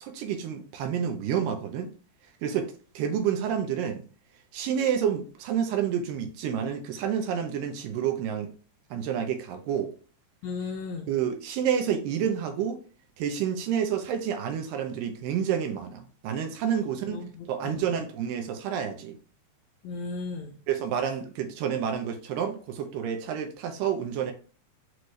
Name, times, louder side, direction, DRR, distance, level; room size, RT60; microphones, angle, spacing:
voice 1, 0.0-1.9 2.4-4.0 4.5-8.5 8.9-9.9 11.1-12.8 13.2-19.2 20.7-24.3, right 8 dB, 85° right, 6 dB, 2.3 m, -29 dB
voice 2, 10.4-11.1 17.1-18.0 19.8-20.6, left 4 dB, 80° left, 2 dB, 1.7 m, -36 dB
6.1 x 2.6 x 3.1 m, 0.40 s
omnidirectional pair, 3.8 m